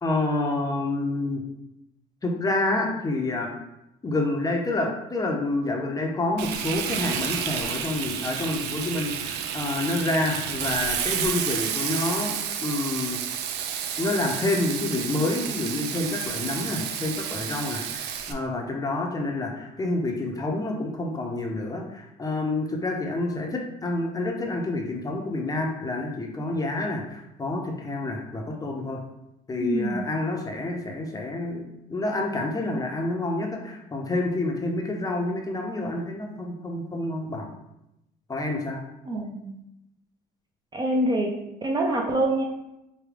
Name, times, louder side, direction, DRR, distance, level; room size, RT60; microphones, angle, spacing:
voice 1, 0.0-1.4 2.2-3.5 4.0-12.4 12.6-13.2 14.0-29.0 29.5-31.6 31.9-37.5 38.3-38.8, left 2 dB, 20° left, 1 dB, 0.6 m, -28 dB
Frying (food), 6.4-18.3, right 8 dB, 80° right, 0.4 m, -31 dB
voice 2, 29.6-30.1 39.1-39.6 40.7-41.3 41.6-42.4, right 1 dB, 25° right, 1 dB, 0.5 m, -25 dB
4.8 x 2.2 x 3.3 m, 0.88 s
cardioid pair, 110°, 17 cm